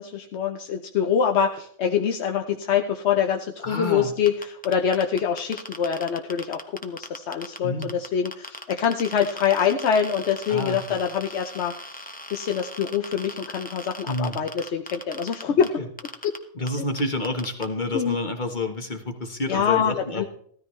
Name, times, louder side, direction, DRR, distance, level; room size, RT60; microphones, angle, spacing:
voice 1, 0.0-15.7 16.2-16.4 17.9-18.2 19.5-20.2, left 7 dB, 55° left, 4 dB, 0.9 m, -25 dB
voice 2, 3.6-4.1 7.6-7.9 10.5-11.0 14.1-14.4 15.5-15.8 16.5-20.3, left 2 dB, 35° left, 5 dB, 1.3 m, -29 dB
sound 1, 4.3-7.6 7.8-15.7 16.0-16.4 16.7-16.8 17.0-17.7, left 1 dB, 10° left, 0.7 m, -38 dB
15.0 x 13.5 x 3.2 m, 0.63 s
omnidirectional pair, 1.6 m